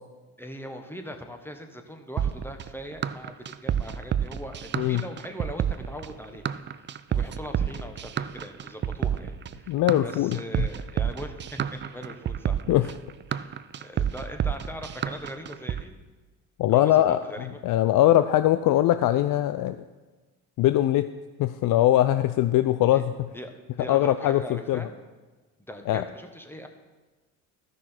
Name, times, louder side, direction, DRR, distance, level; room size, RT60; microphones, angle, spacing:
voice 1, 0.4-9.8 10.0-12.9 13.3-15.9 16.7-17.6 22.9-23.0 23.3-24.9 25.6-26.7, equal, 5° left, 5 dB, 1.2 m, -40 dB
sound 1, 2.2-15.8, right 9 dB, 25° right, 0.4 m, -29 dB
voice 2, 9.7-10.4 12.7-12.9 16.6-19.8 20.6-21.1 21.4-23.3 23.8-24.9 25.9-26.1, left 13 dB, 50° left, 11 dB, 0.4 m, -22 dB
13.0 x 6.1 x 4.4 m, 1.2 s
hypercardioid pair, 65°, 45 cm